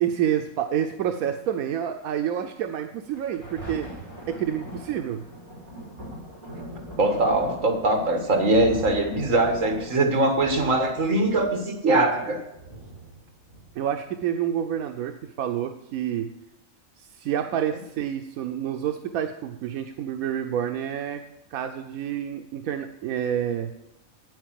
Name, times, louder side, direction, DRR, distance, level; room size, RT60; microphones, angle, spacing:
voice 1, 0.0-3.9 4.3-5.2 13.8-16.3 17.0-21.2 21.5-23.7, right 9 dB, 90° right, 6 dB, 1.1 m, -28 dB
Thunder, 3.1-14.1 14.7-14.8, right 1 dB, 25° right, 4.3 m, -40 dB
voice 2, 7.0-12.4, right 2 dB, 65° right, 4 dB, 2.1 m, -22 dB
9.3 x 9.1 x 7.5 m, 0.88 s
omnidirectional pair, 1.4 m